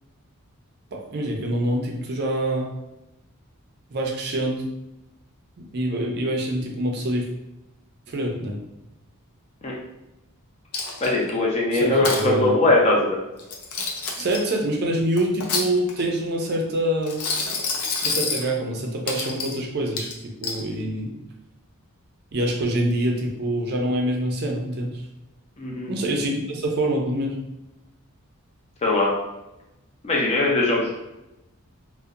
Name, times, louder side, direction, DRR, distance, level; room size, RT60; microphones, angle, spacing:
voice 1, 0.9-2.7 3.9-4.6 5.6-7.3 8.1-8.6 11.7-12.5 14.2-17.2 18.0-20.1 20.4-21.1 22.3-24.9 25.9-27.4, right 1 dB, 45° right, 1 dB, 0.4 m, -25 dB
Coin (dropping), 10.7-11.3 11.8-12.2 13.4-14.5 15.2-16.1 17.0-18.5 19.1-19.6 20.0-20.6, left 4 dB, 75° left, 0.5 m, -28 dB
voice 2, 11.0-13.2 25.6-25.9 28.8-29.1 30.0-30.9, left 2 dB, 30° left, -3 dB, 0.5 m, -20 dB
2.7 x 2.1 x 2.4 m, 0.93 s
head